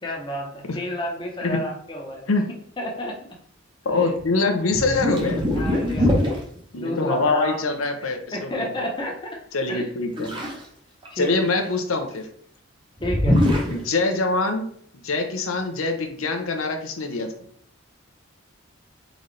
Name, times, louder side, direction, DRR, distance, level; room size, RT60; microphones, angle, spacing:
voice 1, 0.0-2.3 2.8-3.2 3.9-4.1 5.5-6.4 6.8-7.6 8.0-9.4 9.7-9.9 10.2-10.3 11.1-11.3 13.0-13.4, equal, 20° left, -1 dB, 0.8 m, -31 dB
voice 2, 3.8-5.4 6.7-8.7 9.5-10.3 11.2-12.3 13.7-14.7 15.0-17.4, left 3 dB, 85° left, 4 dB, 0.7 m, -24 dB
sound 1, 4.2-4.4 4.7-6.4 10.2-10.7 11.0-11.7 13.0-13.8, left 1 dB, 25° right, 0.9 m, -22 dB
4.0 x 3.9 x 3.2 m, 0.62 s
head